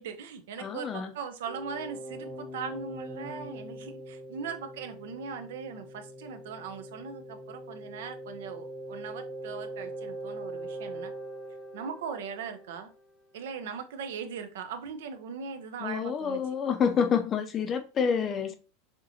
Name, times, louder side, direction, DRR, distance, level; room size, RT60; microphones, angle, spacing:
voice 1, 0.0-11.1 11.7-12.9 13.3-16.4, right 6 dB, 85° right, 0.8 m, -39 dB
voice 2, 0.6-1.1 15.8-18.5, left 7 dB, 20° left, 0.5 m, -28 dB
sound 1, 1.5-13.1, right 1 dB, 5° left, 0.9 m, -42 dB
6.6 x 2.9 x 2.7 m
supercardioid pair, 170°, 0 cm